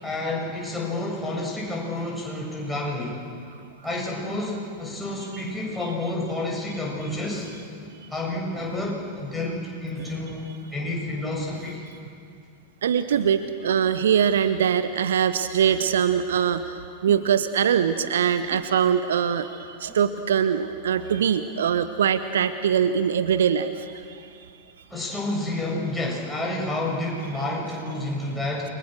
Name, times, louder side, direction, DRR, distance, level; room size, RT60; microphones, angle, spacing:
voice 1, 0.0-3.2 3.8-7.5 8.1-11.8 24.9-28.7, left 2 dB, 5° left, -3 dB, 7.7 m, -29 dB
Human voice, 7.3-7.8 8.5-9.0 10.0-10.3 11.5-11.8 13.1-13.4 14.2-14.6 15.6-16.0 17.1-17.4 18.4-18.7 19.8-20.1 21.0-21.4, right 3 dB, 20° right, 4.8 m, -48 dB
voice 2, 12.8-16.7 17.0-24.3, right 8 dB, 65° right, 11 dB, 1.0 m, -22 dB
29.5 x 23.5 x 6.7 m, 2.4 s
figure-of-eight pair, 90°, 0 cm